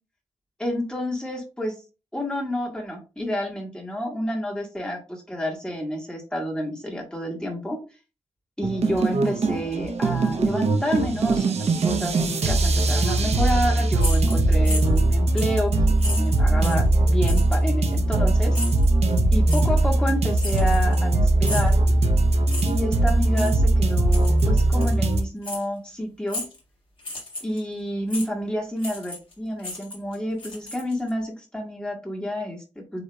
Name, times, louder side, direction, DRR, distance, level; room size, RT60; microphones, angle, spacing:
voice 1, 0.6-1.7 2.1-7.8 8.6-15.7 16.0-18.6 19.3-21.8 22.7-26.5 27.4-33.0, equal, 5° left, -1 dB, 1.6 m, -29 dB
sound 1, 8.6-25.2, right 2 dB, 60° right, 0.7 m, -20 dB
sound 2, 14.0-15.1 15.4-15.6 16.0-16.9 17.3-17.6 18.5-18.9 19.5-19.7 20.4-21.1 21.4-21.8 22.5-22.8 23.3-23.6 24.1-24.5 24.8-24.9 25.4-25.6 26.3-26.6 27.0-27.6 28.1-28.3 28.8-29.3 29.6-31.1, left 2 dB, 45° left, 2.0 m, -34 dB
8.0 x 2.8 x 2.2 m, 0.31 s
wide cardioid pair, 120°, 12 cm